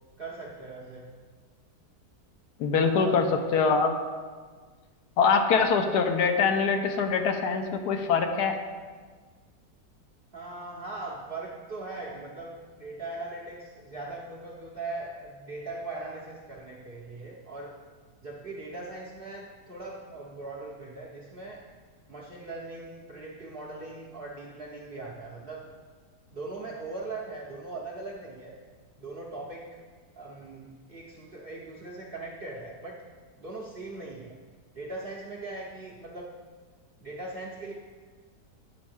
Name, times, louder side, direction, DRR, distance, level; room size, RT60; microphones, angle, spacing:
voice 1, 0.2-1.1 2.8-3.3 10.3-17.8 18.2-21.7 22.1-25.7 26.3-28.6 29.0-29.8 30.2-33.0 33.4-34.4 34.7-36.3 37.0-37.7, right 2 dB, 50° right, -3 dB, 0.6 m, -40 dB
voice 2, 2.6-3.9 5.2-8.6, left 5 dB, 75° left, 5 dB, 1.2 m, -24 dB
9.5 x 6.3 x 3.4 m, 1.5 s
omnidirectional pair, 1.8 m